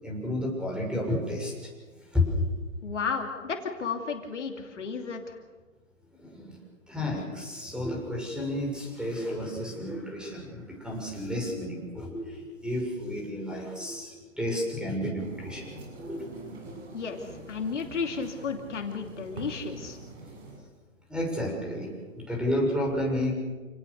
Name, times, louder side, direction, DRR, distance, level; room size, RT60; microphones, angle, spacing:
voice 1, 0.0-1.7 2.1-2.4 4.7-4.8 6.1-6.6 6.9-16.2 21.1-21.9 22.2-23.3, left 1 dB, ahead, 0 dB, 6.2 m, -31 dB
voice 2, 2.8-5.4 16.9-17.2 17.5-20.0, left 5 dB, 60° left, 4 dB, 2.9 m, -33 dB
sound 1, 15.2-20.6, right 2 dB, 55° right, 7.9 m, -44 dB
28.5 x 18.5 x 6.8 m, 1.3 s
figure-of-eight pair, 125°, 40 cm